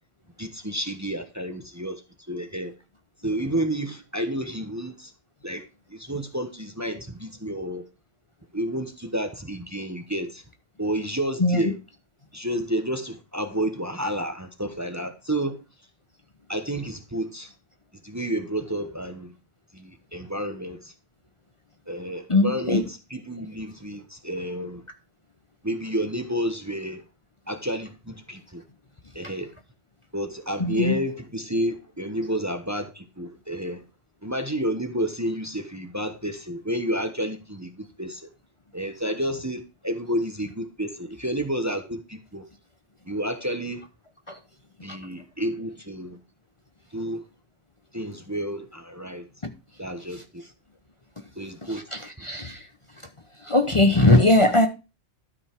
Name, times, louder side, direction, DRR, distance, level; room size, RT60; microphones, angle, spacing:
voice 1, 0.4-2.0 2.3-2.7 3.2-5.1 5.4-5.6 5.9-7.8 8.5-10.4 10.8-11.8 12.3-15.6 16.5-17.5 18.0-19.3 19.7-20.9 21.9-24.8 25.6-27.0 27.5-28.6 29.1-29.5 30.1-33.8 34.2-38.3 38.7-42.4 43.1-43.8 44.8-46.2 46.9-47.2 47.9-49.3 49.8-50.4 51.4-51.9 52.2-52.3, right 1 dB, 15° right, 1.0 m, -30 dB
voice 2, 22.3-22.8 30.6-31.0 44.3-44.4 49.4-49.5 51.6-52.6 53.4-54.7, left 2 dB, 30° left, 0.9 m, -20 dB
12.5 x 5.4 x 4.5 m
omnidirectional pair, 1.1 m